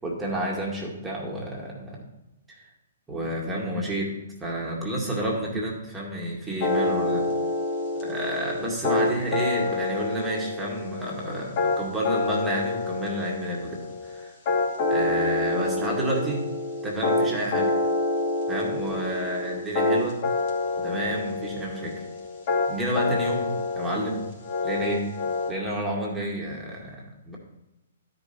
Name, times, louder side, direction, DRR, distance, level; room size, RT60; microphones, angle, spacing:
voice 1, 0.0-2.0 2.5-2.7 3.1-4.1 4.4-7.3 7.9-14.3 14.9-16.4 16.8-17.7 18.5-20.2 20.8-22.0 22.7-24.3 24.6-25.1 25.5-27.4, right 1 dB, 10° right, -3 dB, 2.2 m, -30 dB
sound 1, 6.6-25.5, left 2 dB, 45° left, 2.5 m, -27 dB
12.0 x 5.4 x 4.3 m, 0.97 s
figure-of-eight pair, 120°, 0 cm